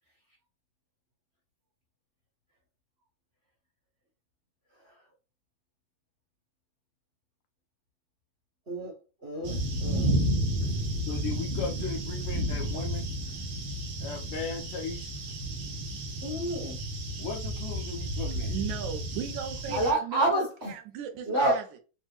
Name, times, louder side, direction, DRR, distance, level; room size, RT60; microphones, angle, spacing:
voice 1, 8.7-10.2 16.2-16.8 19.7-20.7 21.3-21.6, right 1 dB, 35° right, 1.0 m, -29 dB
sound 1, 9.4-19.9, right 1 dB, 65° right, 1.6 m, -32 dB
voice 2, 11.1-13.0 14.0-15.1 17.2-18.5 19.7-19.8, left 5 dB, 75° left, 1.9 m, -37 dB
voice 3, 18.3-21.6, right 8 dB, 80° right, 2.2 m, -37 dB
6.3 x 2.2 x 3.2 m
omnidirectional pair, 3.4 m